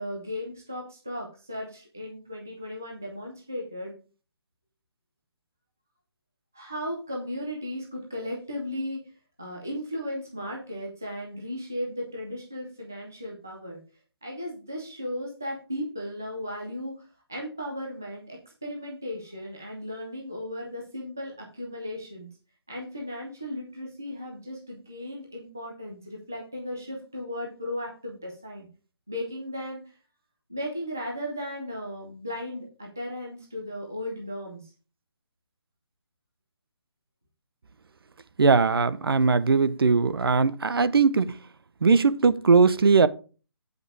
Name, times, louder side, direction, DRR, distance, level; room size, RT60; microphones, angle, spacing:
voice 1, 0.0-3.9 6.5-9.0 9.4-13.8 14.2-22.3 22.7-28.7 29.1-29.8 30.5-34.7, left 1 dB, 5° right, 0.3 m, -36 dB
voice 2, 38.4-41.4 41.8-43.1, right 4 dB, 60° right, 0.8 m, -20 dB
9.6 x 5.3 x 4.7 m
hypercardioid pair, 180°, 14 cm